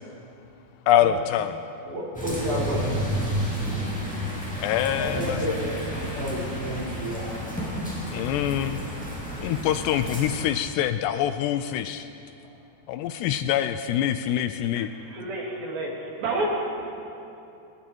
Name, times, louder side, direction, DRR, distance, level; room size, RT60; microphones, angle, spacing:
voice 1, 0.9-1.5 4.6-5.4 8.1-8.8 9.4-12.1 12.9-14.9, left 11 dB, 80° left, 10 dB, 2.6 m, -25 dB
voice 2, 1.8-3.1 4.8-7.3 7.6-7.7, equal, 20° right, -4 dB, 5.6 m, -31 dB
sound 1, 2.1-10.4, equal, ahead, 5.1 m, -31 dB
voice 3, 14.8-16.5, right 2 dB, 60° right, -2 dB, 4.2 m, -30 dB
29.0 x 20.0 x 4.5 m, 2.8 s
omnidirectional pair, 5.0 m